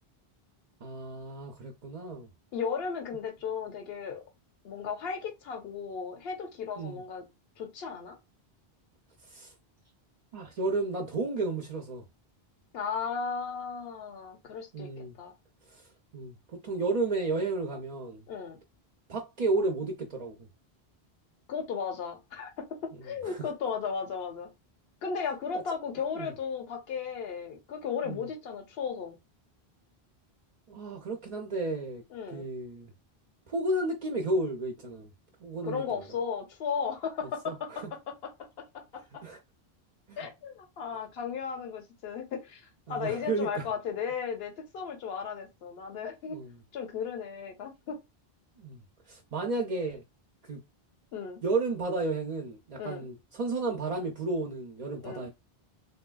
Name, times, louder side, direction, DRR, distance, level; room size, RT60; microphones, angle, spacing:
voice 1, 0.8-2.3 6.8-7.0 9.3-9.5 10.3-12.0 14.7-15.1 15.7-15.8 16.1-16.4 16.6-18.2 19.1-20.5 23.2-23.4 26.2-26.3 28.0-28.3 30.7-32.0 32.3-32.9 33.5-35.1 35.4-36.0 37.5-37.8 39.2-39.4 40.1-40.2 42.9-43.7 46.3-46.5 48.6-50.0 50.5-50.6 51.4-55.3, right 2 dB, 50° right, 0.6 m, -32 dB
voice 2, 2.5-4.2 4.6-7.3 7.6-8.2 12.7-15.3 18.3-18.6 21.5-24.5 25.0-29.2 32.1-32.5 35.6-39.2 40.2-46.4 46.7-48.0 51.1-51.4 52.8-53.0 55.0-55.3, left 6 dB, 75° left, 1.0 m, -35 dB
3.3 x 2.7 x 2.3 m
omnidirectional pair, 1.1 m